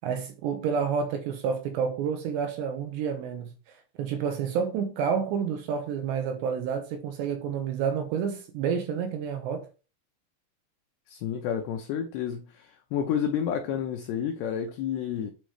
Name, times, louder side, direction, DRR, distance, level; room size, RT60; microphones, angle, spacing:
voice 1, 0.0-3.5 4.0-9.7, right 7 dB, 75° right, 2.7 m, -29 dB
voice 2, 11.1-15.3, left 8 dB, 85° left, 2.4 m, -30 dB
8.9 x 3.0 x 4.9 m
omnidirectional pair, 5.7 m